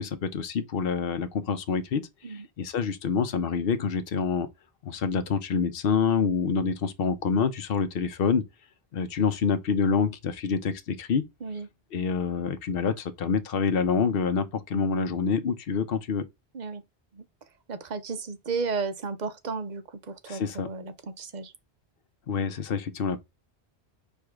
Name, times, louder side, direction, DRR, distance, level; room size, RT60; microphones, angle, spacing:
voice 1, 0.0-2.0 2.3-4.5 4.8-8.4 8.9-11.2 11.9-16.2 20.3-20.7 22.3-23.2, left 6 dB, 60° left, 0.9 m, -27 dB
voice 2, 17.7-21.5, right 4 dB, 45° right, 0.7 m, -34 dB
4.8 x 2.6 x 3.5 m
omnidirectional pair, 1.1 m